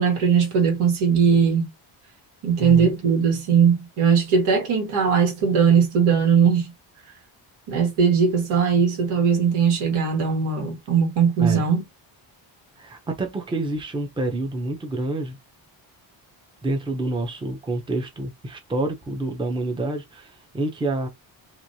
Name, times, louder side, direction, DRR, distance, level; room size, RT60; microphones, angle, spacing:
voice 1, 0.0-1.6 2.4-6.7 7.7-11.8, right 6 dB, 85° right, 1.6 m, -19 dB
voice 2, 2.6-3.0 11.4-11.7 12.8-15.4 16.6-21.1, right 2 dB, 10° right, 0.6 m, -28 dB
3.0 x 2.6 x 2.7 m
cardioid pair, 140°, 48 cm